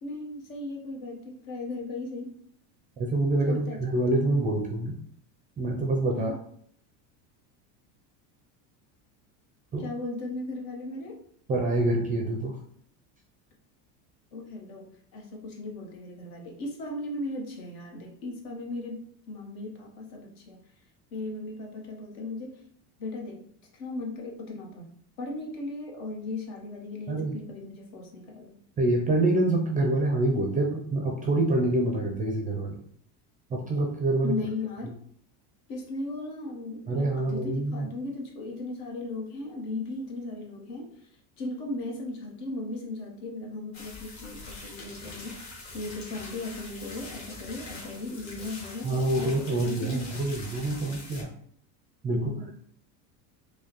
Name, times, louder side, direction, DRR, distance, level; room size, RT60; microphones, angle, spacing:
voice 1, 0.0-2.3 3.4-3.9 6.1-6.4 9.8-11.2 14.3-19.0 19.3-20.6 21.1-22.6 23.0-28.6 34.2-34.9 35.7-50.1 52.1-52.5, left 2 dB, 60° left, 0 dB, 1.3 m, -37 dB
voice 2, 3.0-5.0 5.6-6.3 9.7-9.8 11.5-12.6 27.1-27.4 28.8-32.8 33.5-34.4 36.9-37.9 48.8-51.3 52.0-52.5, right 2 dB, 20° right, 1 dB, 0.4 m, -26 dB
sound 1, 43.7-51.2, left 2 dB, 35° left, 1.3 m, -43 dB
4.5 x 2.2 x 3.0 m, 0.64 s
supercardioid pair, 110°, 49 cm